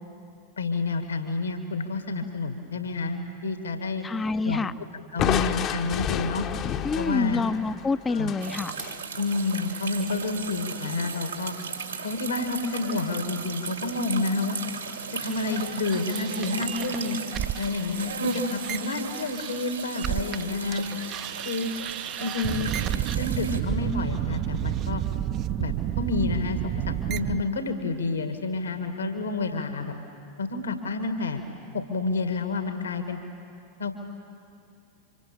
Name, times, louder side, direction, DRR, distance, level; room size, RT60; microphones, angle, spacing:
voice 1, 0.6-4.0 4.4-4.7 5.1-6.5 7.0-7.4 8.1-8.3 9.2-11.5 12.0-14.6 15.1-17.2 17.6-20.8 21.4-21.7 22.2-22.7 23.1-25.0 25.6-29.9 30.4-31.4 31.7-33.2 33.8-34.0, left 3 dB, 70° left, 7 dB, 2.0 m, -29 dB
voice 2, 4.0-4.7 6.8-8.7, left 4 dB, 15° left, 14 dB, 0.6 m, -27 dB
Crushing, 5.2-9.0, left 9 dB, 35° left, 0.9 m, -30 dB
sound 1, 8.4-23.6, right 5 dB, 75° right, 2.5 m, -36 dB
sound 2, 15.2-20.4 20.7-27.4, right 11 dB, 35° right, 0.6 m, -31 dB
30.0 x 25.5 x 7.2 m, 2.4 s
figure-of-eight pair, 90°, 0 cm